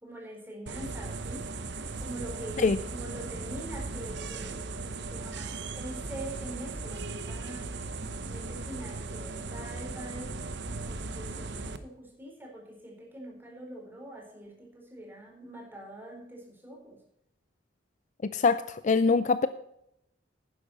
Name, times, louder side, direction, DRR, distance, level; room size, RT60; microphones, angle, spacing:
voice 1, 0.0-1.5 2.0-7.8 8.2-10.4 10.7-17.0, right 1 dB, 10° right, -1 dB, 4.3 m, -43 dB
sound 1, 0.7-11.8, right 3 dB, 60° right, 1.0 m, -37 dB
voice 2, 18.2-19.5, left 4 dB, 40° left, 13 dB, 0.4 m, -24 dB
11.5 x 10.0 x 4.3 m, 0.78 s
head